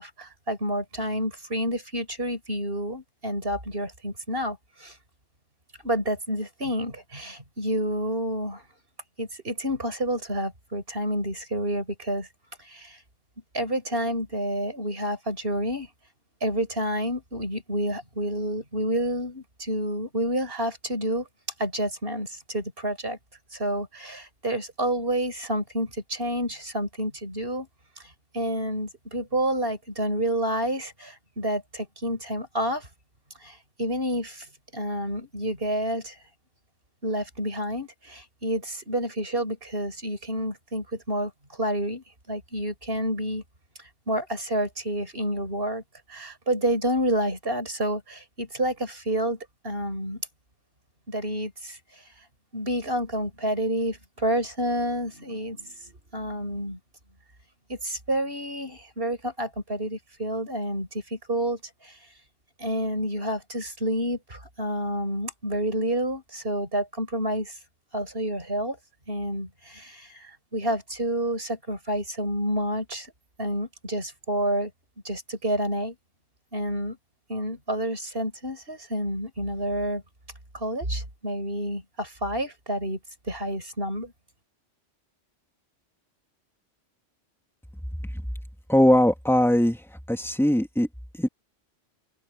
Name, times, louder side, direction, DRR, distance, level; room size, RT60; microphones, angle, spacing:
voice 1, 0.0-4.9 5.8-8.6 9.2-12.3 12.6-13.0 13.5-15.9 16.4-21.3 21.6-23.2 23.5-27.7 28.3-32.9 33.4-34.5 34.7-36.1 37.0-41.3 41.6-43.4 44.1-45.8 46.1-49.4 49.6-50.2 51.1-51.8 52.5-56.8 57.7-61.9 62.6-67.5 67.9-68.8 69.1-73.1 73.4-74.7 75.0-75.9 76.5-77.0 77.3-80.0 80.5-83.0 83.3-84.1, right 1 dB, 50° right, 6.5 m, -29 dB
voice 2, 88.7-89.8 90.1-90.9 91.2-91.3, left 1 dB, ahead, 2.8 m, -20 dB
open air
omnidirectional pair, 1.3 m